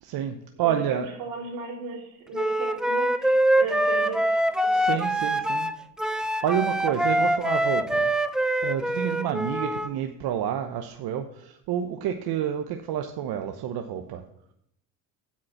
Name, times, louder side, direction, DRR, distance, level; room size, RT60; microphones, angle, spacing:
voice 1, 0.0-1.1 4.7-5.7 6.2-8.1 8.6-14.2, right 9 dB, 60° right, 5 dB, 0.9 m, -29 dB
voice 2, 0.6-4.4 4.6-4.9 5.2-5.3, right 4 dB, 80° right, -1 dB, 3.0 m, -36 dB
Wind instrument woodwind instrument, 2.3-9.9, right 1 dB, ahead, 0.4 m, -24 dB
8.5 x 6.3 x 5.8 m, 0.73 s
supercardioid pair, 85°, 42 cm